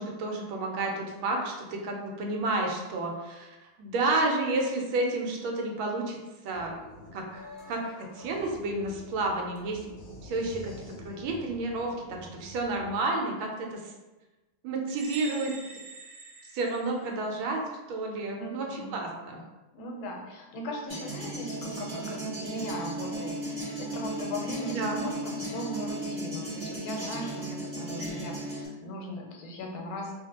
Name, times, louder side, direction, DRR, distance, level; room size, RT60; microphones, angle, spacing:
voice 1, 0.0-3.5 3.8-6.2 6.4-6.8 7.1-7.4 7.7-9.8 10.2-13.8 14.6-15.5 16.5-17.6 17.9-19.4 24.7-25.1, right 2 dB, 90° right, 1 dB, 1.4 m, -31 dB
sound 1, 6.5-13.0, left 1 dB, 65° left, 0.9 m, -47 dB
sound 2, 14.9-17.5, right 3 dB, 70° right, 1.0 m, -45 dB
voice 2, 18.4-18.9 19.7-30.1, left 1 dB, 90° left, 1 dB, 1.4 m, -38 dB
sound 3, 20.9-28.7, right 1 dB, 45° right, 1.3 m, -36 dB
3.1 x 2.5 x 2.8 m, 1.1 s
omnidirectional pair, 2.2 m